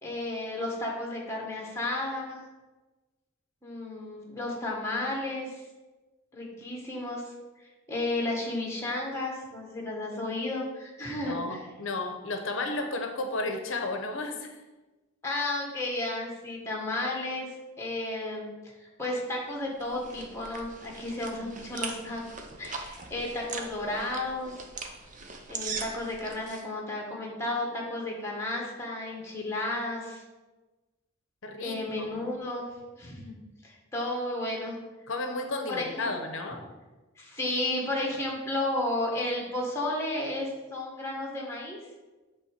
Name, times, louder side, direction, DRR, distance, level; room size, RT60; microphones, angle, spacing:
voice 1, 0.0-2.4 3.6-5.6 6.3-7.2 7.9-11.6 15.2-22.2 22.6-24.5 25.5-30.2 31.6-32.7 33.0-33.3 33.6-34.8 35.7-36.1 37.2-41.8, left 2 dB, 15° left, -1 dB, 1.6 m, -33 dB
voice 2, 11.2-14.5 31.4-32.2 35.1-36.6, left 2 dB, 65° left, 5 dB, 0.8 m, -33 dB
sound 1, 19.5-26.6, right 4 dB, 35° right, 0.8 m, -41 dB
8.2 x 3.6 x 6.6 m, 1.2 s
head